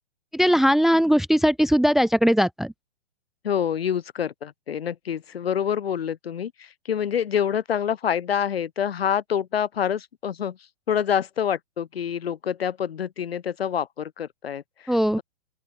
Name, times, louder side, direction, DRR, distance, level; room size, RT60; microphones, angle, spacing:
voice 1, 0.3-2.7 14.9-15.2, equal, ahead, 0.7 m, -19 dB
voice 2, 3.4-10.6 10.9-15.2, left 8 dB, 80° left, 7.5 m, -27 dB
open air
hypercardioid pair, 155°, 30 cm